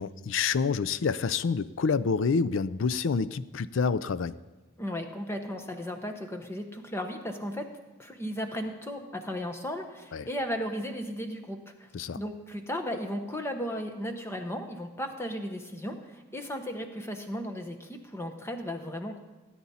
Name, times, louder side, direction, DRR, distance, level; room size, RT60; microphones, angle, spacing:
voice 1, 0.0-4.4 10.1-10.3 11.9-12.2, left 5 dB, 65° left, 16 dB, 0.4 m, -28 dB
voice 2, 4.8-7.7 8.0-11.9 12.1-19.2, equal, 10° left, 5 dB, 1.0 m, -35 dB
17.0 x 9.5 x 4.2 m, 1.2 s
head